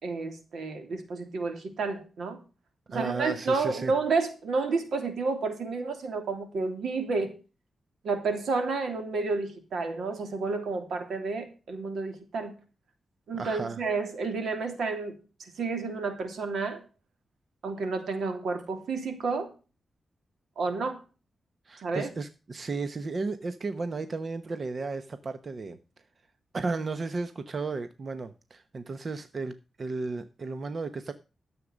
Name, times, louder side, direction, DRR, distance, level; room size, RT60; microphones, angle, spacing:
voice 1, 0.0-2.4 2.9-7.3 8.0-12.5 13.3-15.2 15.6-16.8 17.6-19.5 20.6-21.0 21.8-22.1, right 4 dB, 80° right, 3.1 m, -30 dB
voice 2, 2.9-3.9 13.3-13.8 21.6-25.8 26.5-31.1, right 3 dB, 45° right, 1.0 m, -34 dB
13.0 x 7.7 x 5.2 m
wide cardioid pair, 105°, 0 cm